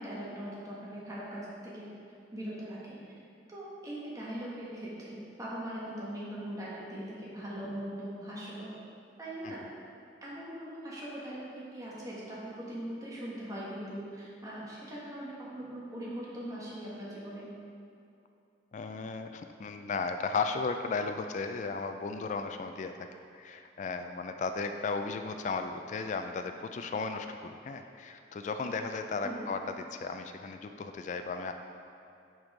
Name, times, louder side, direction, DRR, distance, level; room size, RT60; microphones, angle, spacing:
voice 1, 0.0-1.9 2.3-3.0 3.5-8.8 9.2-9.6 10.2-17.5 29.2-29.4, right 1 dB, 20° right, -7 dB, 1.4 m, -40 dB
voice 2, 18.7-22.9 23.3-31.5, left 4 dB, 45° left, 7 dB, 0.3 m, -35 dB
6.3 x 5.2 x 4.8 m, 2.6 s
head